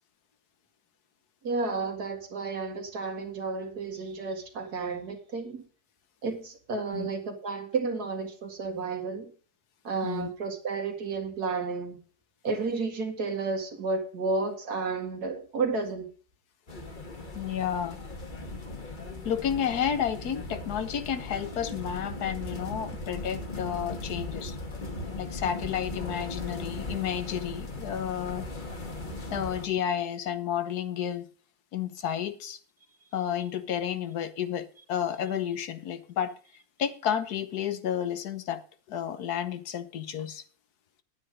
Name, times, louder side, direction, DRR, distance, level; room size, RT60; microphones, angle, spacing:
voice 1, 1.4-5.6 6.2-9.3 9.8-12.0 12.4-16.1, right 4 dB, 85° right, 2.4 m, -32 dB
sound 1, 16.7-29.7, left 2 dB, 35° left, 1.5 m, -38 dB
voice 2, 17.3-18.0 19.2-24.6 25.2-28.5 29.3-31.3 31.7-32.6 33.1-36.3 36.8-38.6 38.9-40.4, left 9 dB, 85° left, 1.5 m, -31 dB
10.0 x 9.0 x 5.0 m
omnidirectional pair, 1.6 m